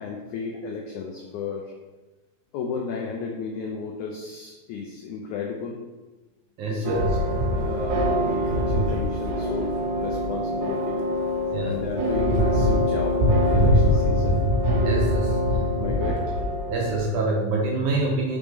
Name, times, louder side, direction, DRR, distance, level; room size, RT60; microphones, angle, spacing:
voice 1, 0.0-1.7 2.5-5.8 6.7-7.0 7.5-11.0 11.6-14.4 15.8-16.4, left 5 dB, 85° left, 0 dB, 1.7 m, -33 dB
voice 2, 6.6-7.1 11.5-11.8 14.9-15.4 16.7-18.4, right 2 dB, 70° right, -1 dB, 2.0 m, -26 dB
sound 1, 6.8-17.0, equal, 90° right, 3.1 m, -23 dB
6.3 x 3.5 x 5.1 m, 1.2 s
omnidirectional pair, 4.2 m